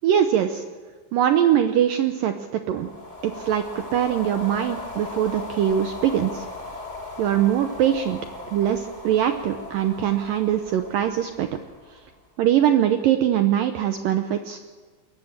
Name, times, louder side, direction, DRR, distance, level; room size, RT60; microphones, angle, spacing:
voice 1, 0.0-0.6 1.1-2.9 3.2-6.5 7.2-8.2 8.5-11.5 12.4-14.6, right 10 dB, 85° right, 7 dB, 1.9 m, -22 dB
sound 1, 2.7-12.2, left 2 dB, 10° left, 2.8 m, -38 dB
22.0 x 18.5 x 7.4 m, 1.5 s
omnidirectional pair, 5.1 m